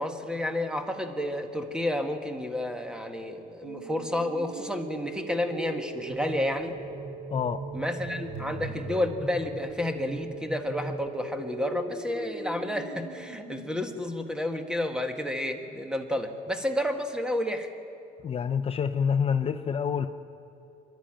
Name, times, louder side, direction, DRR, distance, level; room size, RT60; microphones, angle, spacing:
voice 1, 0.0-6.7 7.7-17.7, left 1 dB, 5° right, 5 dB, 1.7 m, -31 dB
sound 1, 3.6-13.6, right 3 dB, 85° right, 5.2 m, -40 dB
sound 2, 6.1-11.1, right 2 dB, 30° right, 0.8 m, -41 dB
voice 2, 18.2-20.1, left 7 dB, 35° left, 8 dB, 0.6 m, -27 dB
25.5 x 11.5 x 9.0 m, 2.8 s
cardioid pair, 110°, 17 cm